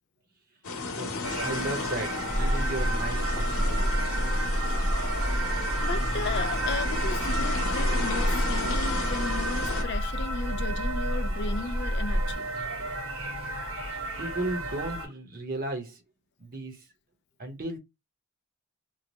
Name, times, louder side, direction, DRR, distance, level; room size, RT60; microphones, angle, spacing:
sound 1, 0.6-9.8, left 4 dB, 80° left, 0.9 m, -35 dB
voice 1, 0.9-3.9 14.2-16.0 16.4-16.8 17.4-17.8, right 2 dB, 40° right, 0.8 m, -35 dB
sound 2, 1.2-15.1, right 2 dB, 80° right, 1.4 m, -33 dB
sound 3, 2.3-12.3, equal, 15° right, 0.4 m, -29 dB
voice 2, 5.8-12.5, left 4 dB, 50° left, 0.4 m, -35 dB
3.1 x 2.1 x 3.8 m
head